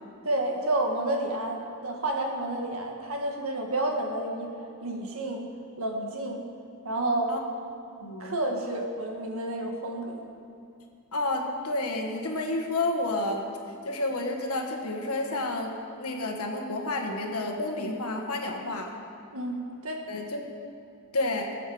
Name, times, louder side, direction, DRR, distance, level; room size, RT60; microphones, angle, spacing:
voice 1, 0.2-4.5 4.8-5.5 5.8-6.5 6.8-7.4 8.2-10.2 19.3-20.0, right 1 dB, 70° right, 1 dB, 1.8 m, -30 dB
voice 2, 8.0-8.4 11.1-13.5 13.8-15.7 16.0-18.9 20.1-20.4 21.1-21.5, left 2 dB, 85° left, 2 dB, 1.6 m, -30 dB
20.5 x 7.9 x 5.1 m, 2.5 s
head